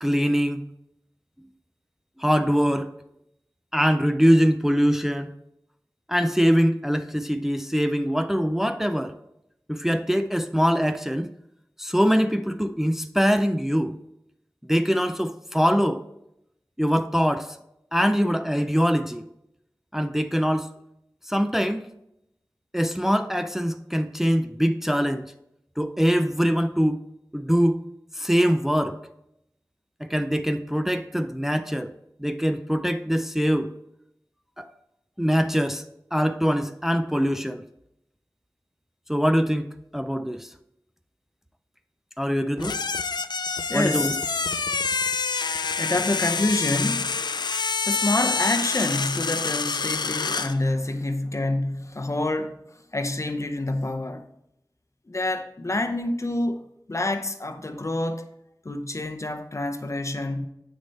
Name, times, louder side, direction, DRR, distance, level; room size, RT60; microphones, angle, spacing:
voice 1, 0.0-0.6 2.2-2.9 3.7-5.3 6.1-9.1 9.7-11.3 11.8-14.0 14.7-16.0 16.8-17.6 17.9-19.2 19.9-20.7 21.3-21.8 22.7-25.3 25.8-27.0 27.3-27.8 28.1-29.0 30.0-31.9 32.2-33.7 34.6-34.7 35.2-35.8 36.1-37.6 39.1-39.7 39.9-40.5 42.2-42.8 43.7-44.1, equal, 5° right, 0.4 m, -23 dB
sound 1, 42.6-50.6, left 4 dB, 90° left, 0.4 m, -27 dB
voice 2, 43.7-44.4 45.8-47.1 47.9-52.6 52.9-54.2 55.1-56.6 56.9-58.3 58.6-60.5, left 2 dB, 45° left, 0.7 m, -27 dB
8.1 x 6.4 x 4.2 m
wide cardioid pair, 45°, 7 cm